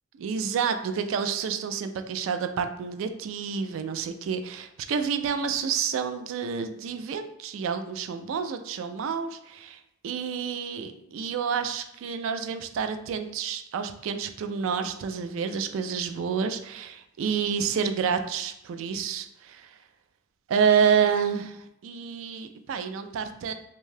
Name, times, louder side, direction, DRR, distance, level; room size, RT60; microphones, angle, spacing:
voice 1, 0.2-19.7 20.5-23.5, right 6 dB, 70° right, 9 dB, 0.3 m, -29 dB
2.6 x 2.2 x 3.2 m, 0.83 s
head